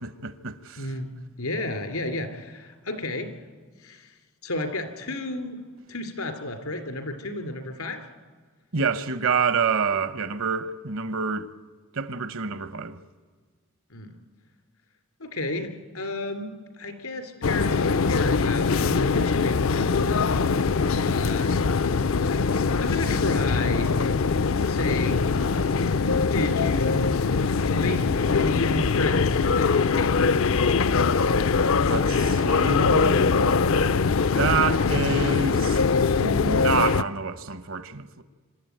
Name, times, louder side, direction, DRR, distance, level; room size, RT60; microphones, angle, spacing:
voice 1, 0.0-0.9 8.7-11.5 11.9-13.0 31.9-33.3 34.3-35.8 36.2-38.2, right 5 dB, 70° right, 1.1 m, -27 dB
voice 2, 0.8-3.3 3.8-4.1 4.4-5.6 5.9-8.0 13.9-14.2 15.2-20.2 20.9-21.6 22.8-24.0 24.6-25.3 26.3-27.2 27.7-29.8, left 2 dB, 85° left, 3.1 m, -32 dB
sound 1, 17.4-37.0, left 4 dB, 70° left, 0.5 m, -22 dB
26.0 x 13.0 x 9.3 m
head